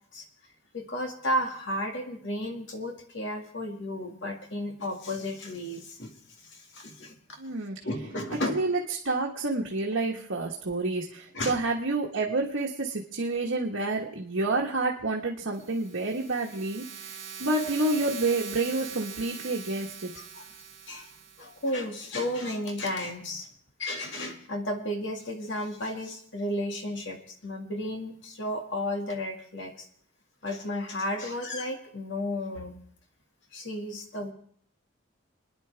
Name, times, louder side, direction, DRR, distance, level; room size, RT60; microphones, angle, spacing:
voice 1, 0.7-6.1 6.4-7.2 7.8-8.6 11.3-11.6 20.2-20.5 20.9-21.1 21.4-23.5 23.8-29.9 30.4-32.8 33.5-34.3, left 1 dB, 65° left, 3 dB, 2.0 m, -33 dB
voice 2, 7.4-7.8 8.5-8.8 9.0-20.1, right 2 dB, 85° right, -2 dB, 1.4 m, -29 dB
sound 1, 15.5-21.7, right 7 dB, 65° right, 3.4 m, -42 dB
29.0 x 10.0 x 3.4 m, 0.63 s
head